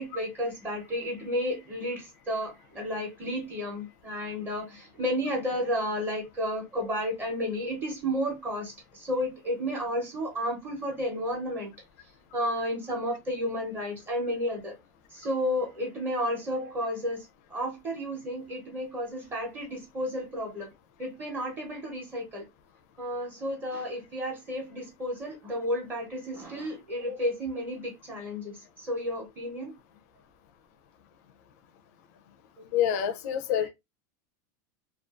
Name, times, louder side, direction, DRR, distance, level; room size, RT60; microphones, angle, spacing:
voice 1, 0.0-11.7 12.3-14.7 15.1-20.7 21.0-22.4 23.0-29.7 33.6-33.7, equal, 20° right, 0.7 m, -32 dB
voice 2, 32.7-33.7, left 9 dB, 55° left, 0.4 m, -26 dB
2.4 x 2.3 x 2.3 m
supercardioid pair, 160°, 10 cm